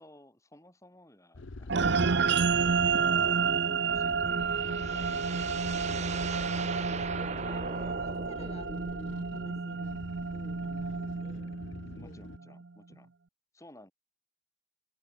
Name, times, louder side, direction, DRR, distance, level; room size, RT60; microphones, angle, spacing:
voice 1, 0.0-2.2 2.9-5.9 6.2-7.1 11.9-13.1 13.5-13.9, left 1 dB, 15° left, 6.2 m, -55 dB
sound 1, 1.3-12.4, left 2 dB, 65° left, 0.9 m, -45 dB
sound 2, 1.7-12.3, right 5 dB, 55° right, 0.7 m, -30 dB
sound 3, 4.0-9.1, right 5 dB, 35° right, 1.1 m, -40 dB
voice 2, 5.9-6.2 6.7-6.8 7.2-10.0 10.3-11.6 12.0-12.2 12.4-12.6 12.9-13.0, left 1 dB, 30° left, 5.3 m, -51 dB
head